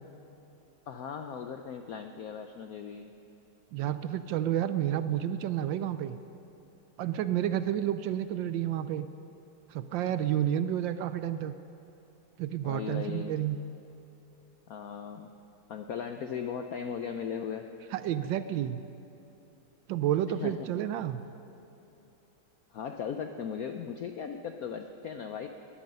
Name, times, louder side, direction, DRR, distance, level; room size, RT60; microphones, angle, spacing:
voice 1, 0.9-3.1 12.6-13.3 14.7-15.3 15.7-17.7 20.4-20.5 22.7-25.5, left 7 dB, 75° left, 6 dB, 0.8 m, -37 dB
voice 2, 3.7-6.2 7.0-9.1 9.7-11.5 12.4-13.6 17.9-18.8 19.9-21.2, right 11 dB, 75° right, 12 dB, 1.2 m, -30 dB
20.0 x 13.5 x 5.4 m, 2.8 s
omnidirectional pair, 2.3 m